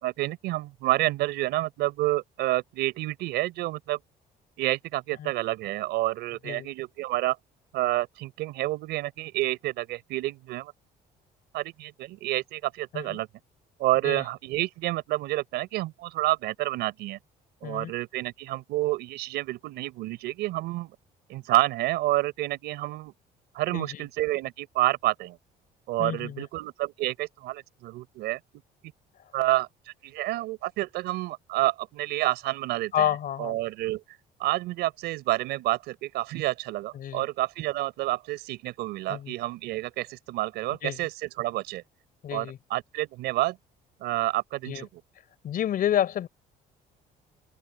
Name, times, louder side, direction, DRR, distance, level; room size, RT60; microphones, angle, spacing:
voice 1, 0.0-4.0 4.6-7.4 7.7-10.7 11.5-13.3 13.8-17.2 17.6-21.0 21.3-23.1 23.5-25.4 25.9-28.4 29.3-29.7 30.0-33.1 33.4-34.0 34.4-41.8 42.3-43.6 44.0-44.9, right 17 dB, 85° right, 4.0 m, -29 dB
voice 2, 23.7-24.0 26.0-26.5 32.9-33.6 36.9-37.3 39.1-39.3 40.8-41.0 42.2-42.6 44.7-44.8 45.4-46.3, left 10 dB, 60° left, 3.8 m, -29 dB
cardioid pair, 110°, 17 cm